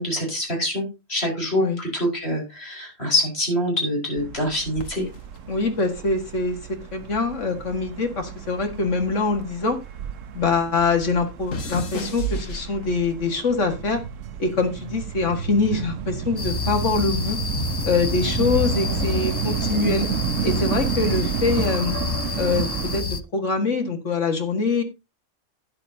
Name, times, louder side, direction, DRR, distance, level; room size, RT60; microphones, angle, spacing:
voice 1, 0.0-5.1, left 1 dB, 50° left, 0 dB, 5.2 m, -25 dB
sound 1, 4.2-23.0, right 9 dB, 80° right, 1.1 m, -31 dB
sound 2, 4.7-7.3 7.5-10.2 10.5-13.3 14.0-14.4, right 1 dB, 85° left, 1.9 m, -35 dB
voice 2, 5.5-6.6 6.9-9.8 10.3-14.0 14.4-17.4 17.8-20.1 20.4-22.0 22.4-24.8, left 4 dB, 70° left, 5 dB, 2.2 m, -24 dB
sound 3, 16.4-23.2, left 5 dB, 35° left, 0.4 m, -29 dB
12.5 x 9.9 x 2.8 m, 0.26 s
omnidirectional pair, 1.3 m